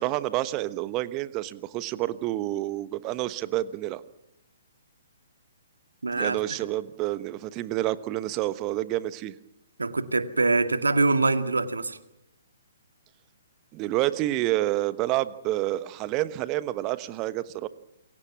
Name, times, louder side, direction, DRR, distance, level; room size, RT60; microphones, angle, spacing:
voice 1, 0.0-4.0 6.1-9.3 13.7-17.7, right 16 dB, 25° right, 15 dB, 1.2 m, -28 dB
voice 2, 6.0-6.4 9.8-12.0, right 3 dB, 75° right, 9 dB, 2.1 m, -24 dB
28.5 x 23.5 x 6.1 m, 0.88 s
figure-of-eight pair, 125°, 0 cm